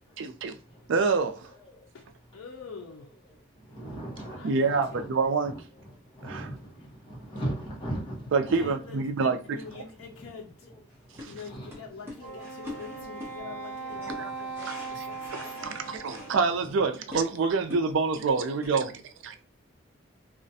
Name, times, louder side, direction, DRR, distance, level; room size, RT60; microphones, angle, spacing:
voice 1, 0.2-0.5 0.9-1.5 4.4-5.5 6.2-6.5 8.3-9.6 11.2-11.3 14.2-14.3 14.7-15.0 15.6-19.4, right 4 dB, 65° right, 0.4 m, -27 dB
voice 2, 2.3-3.1 4.4-5.3 6.8-6.9 8.6-10.7 11.3-15.8, left 5 dB, 85° left, 0.4 m, -45 dB
voice 3, 3.8-5.1 5.4-5.5 6.2-6.6 7.1-8.2 11.5-11.7, right 1 dB, 25° left, 0.8 m, -36 dB
sound 1, 10.9-18.9, left 1 dB, 10° right, 0.6 m, -45 dB
Wind instrument woodwind instrument, 12.2-16.8, right 4 dB, 35° right, 1.0 m, -39 dB
2.4 x 2.1 x 2.6 m
head